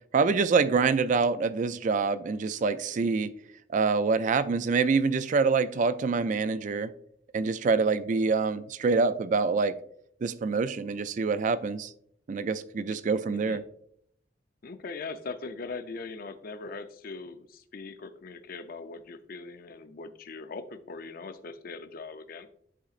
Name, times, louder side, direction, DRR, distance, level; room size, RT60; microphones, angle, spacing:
voice 1, 0.1-3.3 3.7-6.9 7.3-9.7 10.2-11.9 12.3-13.6, right 4 dB, 45° right, 0.3 m, -26 dB
voice 2, 13.3-13.6 14.6-22.5, left 4 dB, 55° left, 0.5 m, -40 dB
10.0 x 3.8 x 2.4 m
head